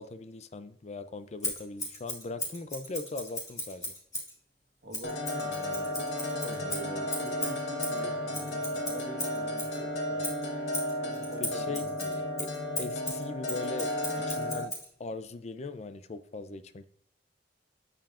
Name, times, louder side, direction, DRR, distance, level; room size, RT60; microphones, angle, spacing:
voice 1, 0.0-3.9 11.4-12.5 12.8-13.9 14.3-14.7 15.0-16.8, left 3 dB, 40° left, 11 dB, 0.5 m, -40 dB
Scissors, 1.4-4.4 4.9-9.8 10.2-14.9, left 1 dB, 20° left, 2.3 m, -37 dB
voice 2, 4.8-10.2 11.0-12.2, right 1 dB, 75° right, 3 dB, 1.5 m, -45 dB
sound 1, 5.0-14.6, left 1 dB, 90° left, 1.2 m, -33 dB
9.0 x 6.8 x 2.5 m, 0.65 s
head